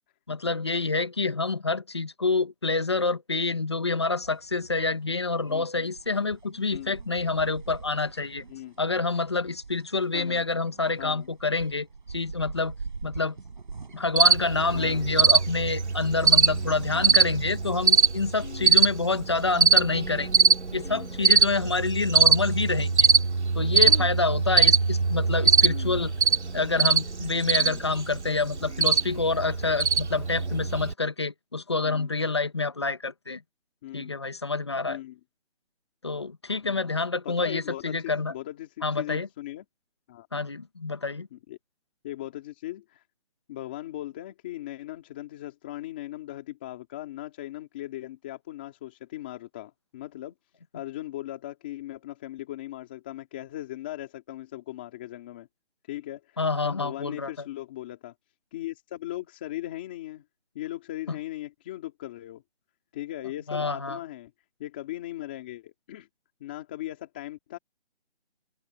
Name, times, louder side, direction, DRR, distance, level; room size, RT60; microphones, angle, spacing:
voice 1, 0.3-8.4 8.8-12.7 13.0-13.4 13.9-20.3 20.7-23.1 23.5-26.1 26.5-33.4 33.9-35.0 36.0-38.3 38.8-39.3 40.3-41.3 56.4-57.3 61.1-61.2 63.5-64.0, left 3 dB, 25° left, 1.2 m, -27 dB
sound 1, 4.2-17.5, right 4 dB, 45° right, 7.7 m, -44 dB
voice 2, 5.5-5.9 6.7-7.0 8.5-8.8 10.1-10.5 11.0-11.3 14.7-15.1 16.9-17.2 18.4-18.8 20.8-21.2 23.8-24.1 25.7-26.0 27.6-27.8 31.8-32.1 33.8-34.1 34.9-35.2 36.6-36.9 37.2-39.6 40.1-40.3 41.3-41.6 42.0-43.0 43.5-50.3 50.7-55.5 55.8-58.1 58.5-60.2 60.5-62.4 62.9-64.3 64.6-66.1 66.4-67.6, left 14 dB, 10° left, 2.0 m, -38 dB
Cricket, 14.2-30.9, right 5 dB, 90° right, 2.2 m, -23 dB
open air
hypercardioid pair, 180°, 33 cm